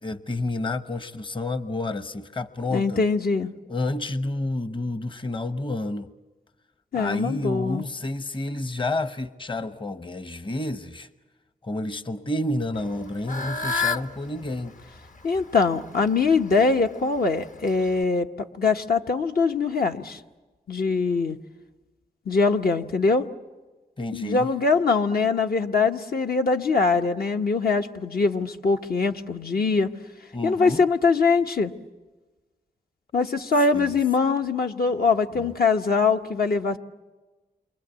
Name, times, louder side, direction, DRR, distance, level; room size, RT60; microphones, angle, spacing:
voice 1, 0.0-3.0 3.7-6.1 6.9-11.1 11.6-14.8 24.0-24.5 30.3-30.8 33.7-34.0 35.3-35.5, left 2 dB, 30° left, 0.9 m, -30 dB
voice 2, 2.7-3.5 6.9-7.8 15.2-20.2 20.7-21.4 22.3-23.3 24.1-29.9 30.4-31.7 33.1-36.8, left 4 dB, 70° left, 1.2 m, -22 dB
Fowl / Bird, 12.7-18.0, left 4 dB, 50° left, 0.9 m, -33 dB
28.5 x 24.5 x 8.2 m
cardioid pair, 65°, 16 cm